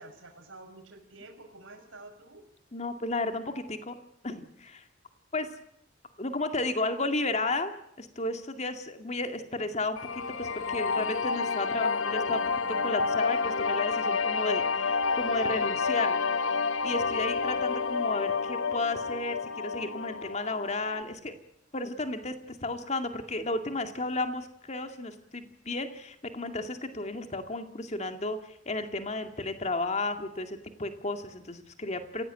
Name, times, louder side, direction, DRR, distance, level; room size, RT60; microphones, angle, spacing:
voice 1, 0.0-2.4, right 2 dB, 90° right, 3 dB, 5.5 m, -49 dB
voice 2, 2.7-4.0 4.2-4.8 5.3-5.5 6.2-12.4 12.8-16.2 16.8-21.3 21.7-32.2, left 2 dB, 35° left, 7 dB, 2.3 m, -33 dB
sound 1, 10.0-21.0, left 4 dB, 90° left, 1.0 m, -29 dB
27.5 x 16.5 x 9.1 m, 0.78 s
head